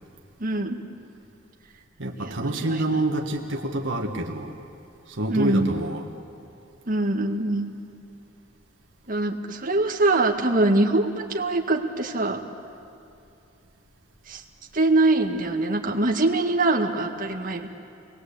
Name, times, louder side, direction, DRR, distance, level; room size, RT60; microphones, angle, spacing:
voice 1, 0.4-0.8 2.2-3.0 5.3-5.7 6.9-7.7 9.1-12.4 14.3-14.4 14.7-17.7, right 2 dB, 45° right, 1 dB, 1.9 m, -23 dB
voice 2, 2.0-4.5 5.1-6.1, right 2 dB, 75° right, 1 dB, 1.9 m, -27 dB
29.5 x 21.0 x 8.5 m, 2.6 s
head